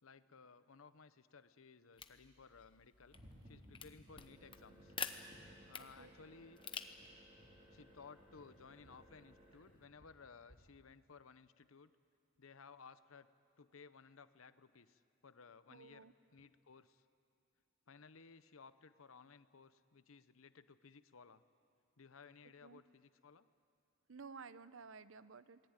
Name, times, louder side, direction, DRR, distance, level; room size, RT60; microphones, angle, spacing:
voice 1, 0.0-3.2 3.4-4.9 5.7-6.6 7.7-11.9 12.4-13.3 13.6-16.1 16.3-17.0 17.9-21.4 22.0-23.5, left 5 dB, 80° left, 13 dB, 0.8 m, -59 dB
sound 1, 1.9-9.9, left 6 dB, 25° left, 1.0 m, -51 dB
sound 2, 3.1-10.6, equal, 30° right, 4.4 m, -62 dB
voice 2, 15.7-16.1 22.6-22.8 24.1-25.6, right 5 dB, 75° right, 15 dB, 0.7 m, -54 dB
27.5 x 20.0 x 9.0 m, 2.4 s
head